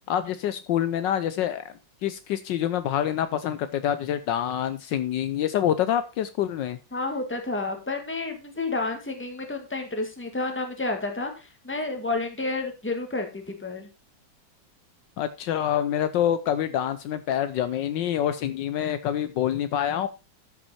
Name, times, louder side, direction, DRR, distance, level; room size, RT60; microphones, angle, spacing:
voice 1, 0.1-1.7 2.0-6.8 15.2-20.1, left 10 dB, 75° left, 12 dB, 1.3 m, -26 dB
voice 2, 6.9-13.9, left 3 dB, 5° left, 5 dB, 1.6 m, -30 dB
12.5 x 5.9 x 4.2 m, 0.29 s
omnidirectional pair, 2.1 m